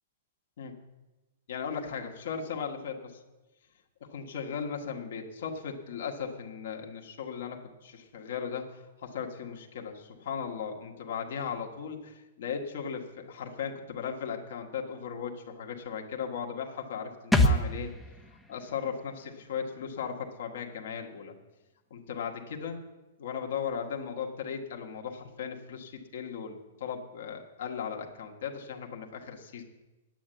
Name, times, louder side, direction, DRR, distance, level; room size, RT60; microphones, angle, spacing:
voice 1, 1.5-3.2 4.1-8.7 9.0-17.9 18.5-21.3 21.9-22.8 23.2-29.6, left 7 dB, 55° left, 1 dB, 1.7 m, -37 dB
sound 1, 17.3-20.8 21.1-21.2, left 1 dB, 5° left, 1.0 m, -30 dB
9.2 x 8.7 x 9.2 m, 1.1 s
figure-of-eight pair, 105°, 0 cm